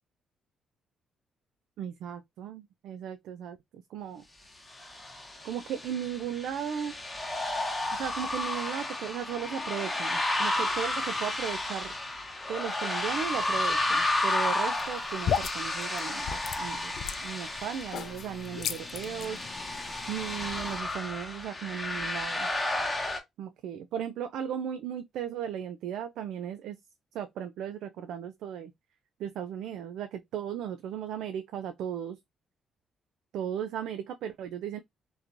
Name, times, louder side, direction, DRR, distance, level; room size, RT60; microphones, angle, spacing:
voice 1, 1.8-4.2 5.4-6.9 7.9-11.9 12.5-16.9 17.2-19.4 20.1-22.5 23.4-26.8 27.1-28.7 29.2-32.2 33.3-34.8, right 9 dB, 80° right, 0.3 m, -36 dB
sound 1, 4.8-23.2, left 2 dB, 10° left, 0.8 m, -32 dB
sound 2, 14.8-20.8, left 8 dB, 70° left, 0.4 m, -36 dB
3.0 x 2.2 x 2.4 m
cardioid pair, 90°, 0 cm